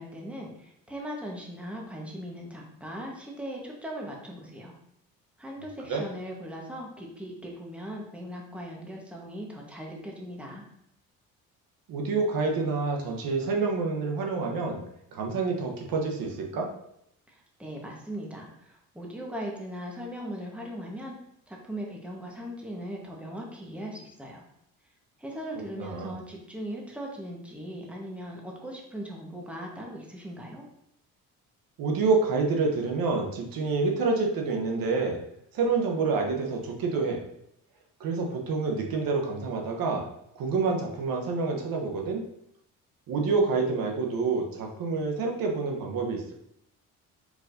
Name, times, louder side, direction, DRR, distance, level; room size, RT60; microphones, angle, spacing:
voice 1, 0.0-4.7 5.4-10.6 17.3-21.2 21.5-24.4 25.2-30.6, equal, 5° right, -2 dB, 1.2 m, -39 dB
voice 2, 11.9-14.8 15.1-16.7 25.8-26.1 31.8-35.2 35.5-37.2 38.0-40.1 40.3-42.2 43.1-46.3, right 4 dB, 75° right, 1 dB, 1.0 m, -27 dB
4.7 x 4.3 x 2.6 m, 0.75 s
cardioid pair, 85°, 35 cm